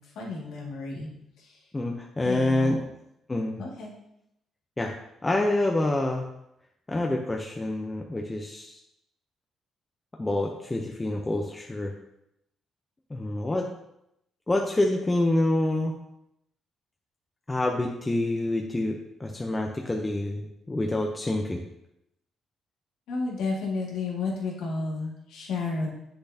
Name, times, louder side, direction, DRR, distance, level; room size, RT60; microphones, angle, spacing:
voice 1, 0.2-1.1 1.4-1.5 2.2-2.8 3.6-3.9 23.1-25.9, left 3 dB, 85° left, -2 dB, 2.0 m, -31 dB
voice 2, 1.7-2.8 3.3-3.6 4.8-5.0 5.2-6.3 6.9-8.8 10.2-12.0 13.1-13.7 14.5-16.0 17.5-21.6, left 2 dB, 20° left, 1 dB, 0.7 m, -27 dB
7.8 x 6.8 x 2.8 m, 0.81 s
cardioid pair, 90°, 0 cm